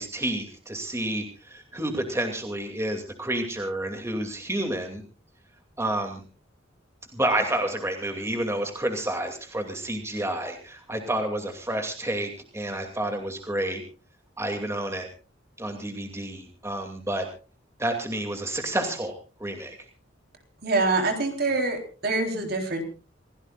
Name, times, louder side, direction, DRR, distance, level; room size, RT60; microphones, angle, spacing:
voice 1, 0.0-5.0 5.8-6.2 7.1-13.8 14.4-15.1 15.6-17.3 17.8-19.1 19.4-19.8, right 1 dB, 15° right, 4 dB, 2.5 m, -29 dB
voice 2, 20.6-22.8, right 3 dB, 55° right, 4 dB, 3.8 m, -25 dB
27.5 x 16.5 x 2.5 m, 0.35 s
head